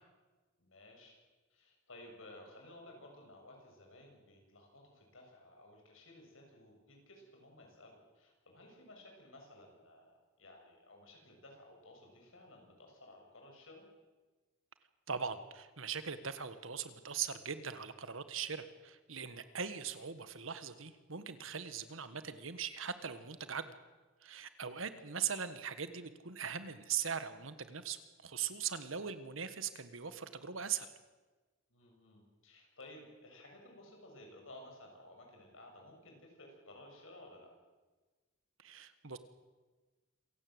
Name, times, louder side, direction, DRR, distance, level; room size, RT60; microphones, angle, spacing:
voice 1, 0.6-1.2 1.5-13.9 19.3-19.6 31.7-37.5, left 1 dB, 75° left, 1 dB, 7.4 m, -56 dB
voice 2, 15.1-23.7 24.2-30.9 38.6-39.2, right 7 dB, 70° right, 11 dB, 1.5 m, -40 dB
27.0 x 16.5 x 8.0 m, 1.3 s
head